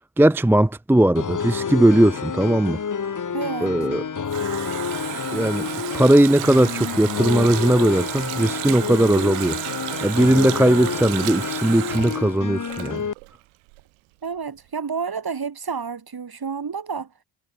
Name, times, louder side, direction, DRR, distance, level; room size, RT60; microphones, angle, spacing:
voice 1, 0.2-2.8 3.6-4.0 5.3-9.6 10.0-13.0, right 1 dB, 5° right, 0.6 m, -18 dB
sound 1, 1.2-13.1, left 6 dB, 35° left, 1.6 m, -29 dB
voice 2, 3.3-3.8 14.2-17.1, right 5 dB, 45° right, 5.6 m, -30 dB
Water tap faucet, 3.8-13.4 13.7-13.8, right 30 dB, 90° right, 4.7 m, -33 dB
hypercardioid pair, 40°, 50 cm